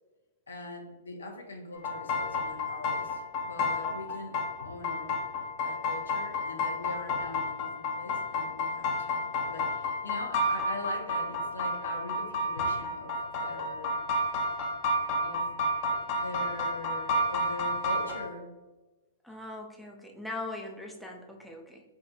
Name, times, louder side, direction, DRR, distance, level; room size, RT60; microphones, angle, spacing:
voice 1, 0.5-5.1 5.6-13.9 15.1-15.5 16.1-18.5, left 2 dB, 80° left, 2 dB, 0.7 m, -42 dB
sound 1, 1.7-18.2, left 1 dB, 45° left, 0.8 m, -30 dB
voice 2, 19.2-21.8, left 2 dB, ahead, 0 dB, 0.5 m, -40 dB
4.7 x 2.4 x 2.8 m, 1.2 s
figure-of-eight pair, 110°, 0 cm